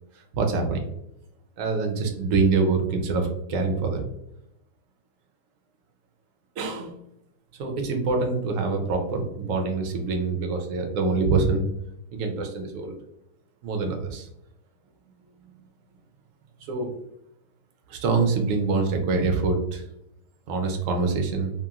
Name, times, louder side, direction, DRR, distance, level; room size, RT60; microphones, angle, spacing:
voice 1, 0.3-0.8 1.6-4.1 6.6-6.9 7.6-11.6 12.1-12.9 13.6-14.3 16.6-16.9 17.9-19.8 20.5-21.5, right 4 dB, 70° right, 3 dB, 0.8 m, -25 dB
2.9 x 2.5 x 2.3 m, 0.82 s
omnidirectional pair, 1.7 m